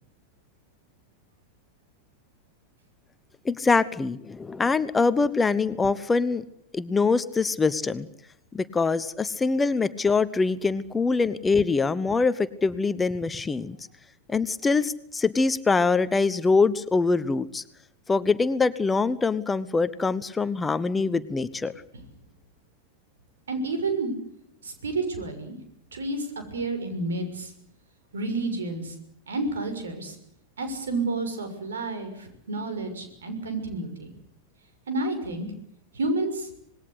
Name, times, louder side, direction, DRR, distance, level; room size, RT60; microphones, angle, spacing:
voice 1, 3.4-6.4 6.7-8.1 8.5-13.8 14.3-17.6 18.1-21.7, left 4 dB, 15° left, 15 dB, 1.0 m, -24 dB
voice 2, 23.5-24.1 24.6-25.5 25.9-27.5 28.1-28.9 29.3-30.2 30.6-34.1 34.9-35.5 35.9-36.5, right 2 dB, 65° right, 8 dB, 6.4 m, -30 dB
26.5 x 20.5 x 8.2 m, 0.76 s
figure-of-eight pair, 90°, 0 cm